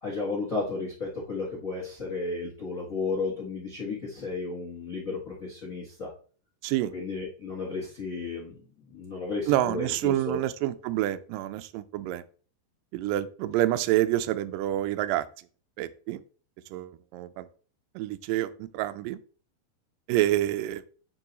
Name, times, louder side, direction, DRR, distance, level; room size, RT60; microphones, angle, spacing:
voice 1, 0.0-6.1 6.9-8.6 8.9-10.4, left 3 dB, 90° left, -3 dB, 0.7 m, -33 dB
voice 2, 9.5-12.2 12.9-15.2 15.8-16.2 16.7-17.5 18.0-19.2 20.1-20.8, right 14 dB, 85° right, 11 dB, 1.9 m, -27 dB
9.4 x 3.3 x 4.0 m, 0.40 s
omnidirectional pair, 4.5 m